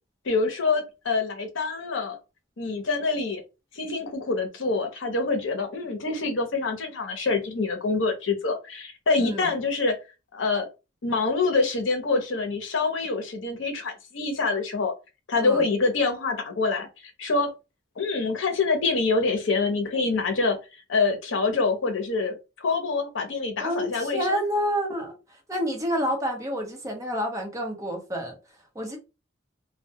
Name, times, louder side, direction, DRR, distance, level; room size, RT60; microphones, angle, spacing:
voice 1, 0.2-2.2 2.6-3.4 3.7-10.0 10.3-10.7 11.0-14.9 15.3-16.9 17.2-17.5 18.0-20.6 20.9-24.5, left 3 dB, 70° left, 0.7 m, -26 dB
voice 2, 9.2-9.5 15.4-15.6 23.6-25.1 25.5-28.4 28.7-29.0, equal, 15° right, 0.7 m, -28 dB
2.2 x 2.1 x 2.7 m
head